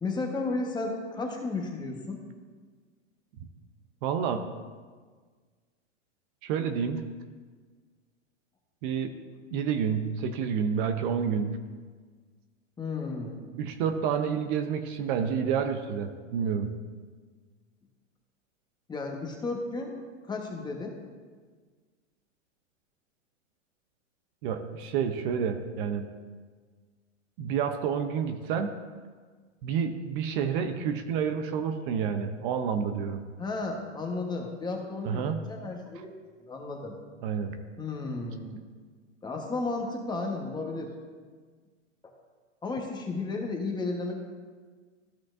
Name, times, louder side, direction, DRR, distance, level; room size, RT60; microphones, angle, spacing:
voice 1, 0.0-2.2 12.8-13.4 18.9-19.9 20.3-21.0 33.4-36.1 36.5-36.9 37.8-38.6 39.2-40.9 42.6-44.1, left 3 dB, 10° left, 1 dB, 1.2 m, -33 dB
voice 2, 4.0-4.4 6.4-7.0 8.8-9.1 9.5-11.5 13.6-16.7 24.4-26.1 27.4-28.7 29.6-33.2 35.0-35.4 37.2-37.5, right 7 dB, 45° right, 7 dB, 0.7 m, -29 dB
14.0 x 5.8 x 2.6 m, 1.5 s
hypercardioid pair, 125°, 38 cm